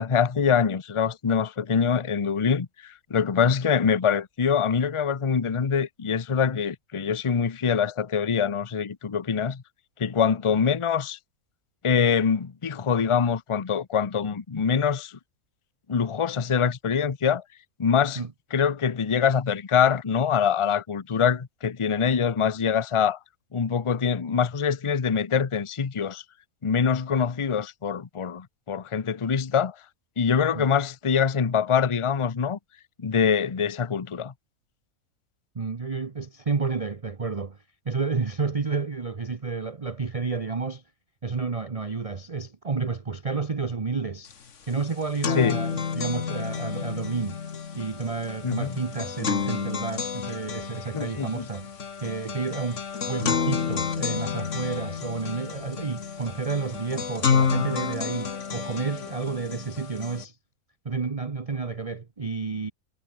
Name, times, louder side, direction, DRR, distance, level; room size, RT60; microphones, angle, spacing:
voice 1, 0.0-9.6 10.0-11.2 11.8-15.2 15.9-17.4 17.8-18.2 18.5-23.2 23.5-26.2 26.6-29.8 30.2-32.6 33.0-34.3 45.4-45.6 48.4-48.8 50.9-51.5, left 6 dB, 30° left, 0.7 m, -24 dB
voice 2, 35.5-37.6 37.8-40.8 41.2-44.3 44.7-47.4 47.8-51.7 52.0-52.8 53.1-60.4 60.8-62.7, right 4 dB, 30° right, 0.9 m, -30 dB
sound 1, 44.3-44.4 44.7-60.2, left 6 dB, 55° left, 1.7 m, -30 dB
omnidirectional pair, 1.5 m